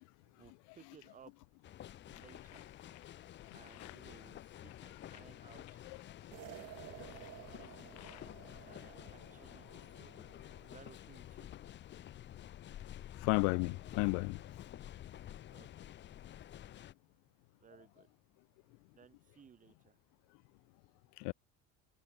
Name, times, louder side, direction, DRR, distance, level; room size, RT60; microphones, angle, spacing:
voice 1, 0.2-1.3 2.1-2.7 3.5-5.8 6.8-8.0 8.5-11.5 15.5-15.9 17.6-18.1 18.9-20.0, right 7 dB, 25° right, 6.2 m, -61 dB
sound 1, 1.6-16.9, left 12 dB, 35° left, 2.3 m, -51 dB
sound 2, 1.9-8.7, left 20 dB, 60° left, 3.3 m, -61 dB
sound 3, 6.3-10.8, right 17 dB, 55° right, 3.8 m, -54 dB
voice 2, 13.1-14.4 21.2-21.3, left 32 dB, 75° left, 0.7 m, -32 dB
cardioid pair, 170°, 31 cm